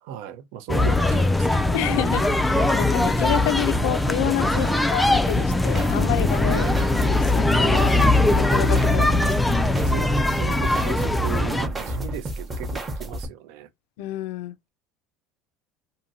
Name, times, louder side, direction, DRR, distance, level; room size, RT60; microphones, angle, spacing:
voice 1, 0.0-2.0 4.5-4.8 6.4-6.9 9.8-13.7, right 10 dB, 75° right, 0.6 m, -36 dB
sound 1, 0.7-11.7, left 2 dB, 5° left, 0.3 m, -21 dB
voice 2, 1.7-6.6 7.0-8.0 8.3-9.3 14.0-14.6, left 13 dB, 80° left, 0.4 m, -29 dB
sound 2, 5.3-13.3, right 1 dB, 20° right, 0.8 m, -32 dB
2.8 x 2.6 x 2.6 m
cardioid pair, 140°, 0 cm